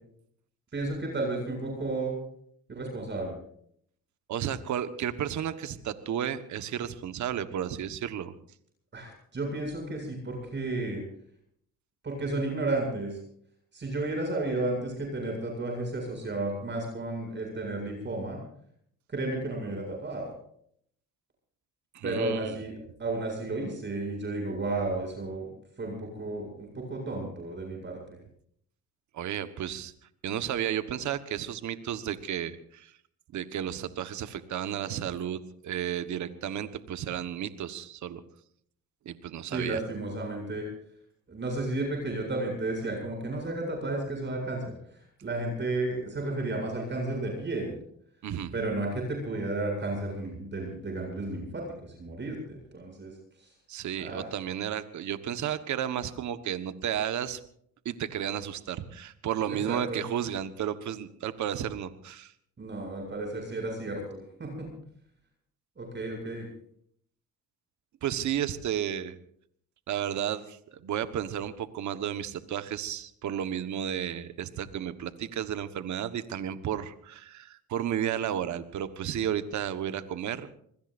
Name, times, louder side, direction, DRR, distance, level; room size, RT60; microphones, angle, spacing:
voice 1, 0.7-2.1 2.7-3.3 8.9-11.0 12.0-13.2 13.7-18.4 19.1-20.3 22.0-22.7 23.0-25.5 25.8-28.2 39.5-40.7 41.3-47.8 48.5-53.5 54.0-54.3 59.5-60.0 62.6-64.7 65.8-66.5, right 2 dB, 35° right, 2 dB, 7.7 m, -33 dB
voice 2, 4.3-8.3 21.9-22.5 29.1-29.9 30.2-32.9 33.3-38.2 39.0-39.8 48.2-48.5 53.7-57.4 57.8-62.3 68.0-69.2 69.9-80.6, right 10 dB, 70° right, 11 dB, 1.4 m, -33 dB
26.5 x 21.0 x 2.6 m, 0.65 s
cardioid pair, 90°, 30 cm